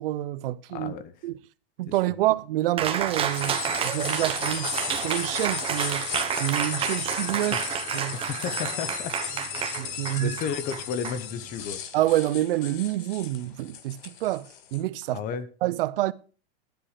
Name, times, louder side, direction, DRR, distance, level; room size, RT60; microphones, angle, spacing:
voice 1, 0.0-0.9 1.2-1.4 1.8-6.1 6.4-7.5 7.9-8.2 9.8-10.4 11.9-15.2 15.6-16.1, right 15 dB, 70° right, 0.7 m, -27 dB
voice 2, 0.7-1.1 7.4-7.7 8.1-9.1 10.1-11.8 15.1-15.5, left 7 dB, 30° left, 0.9 m, -33 dB
Cheering, 2.8-11.7, right 8 dB, 20° right, 1.2 m, -30 dB
sound 1, 2.9-14.8, left 9 dB, 60° left, 1.9 m, -36 dB
11.0 x 10.5 x 4.9 m
supercardioid pair, 155°, 29 cm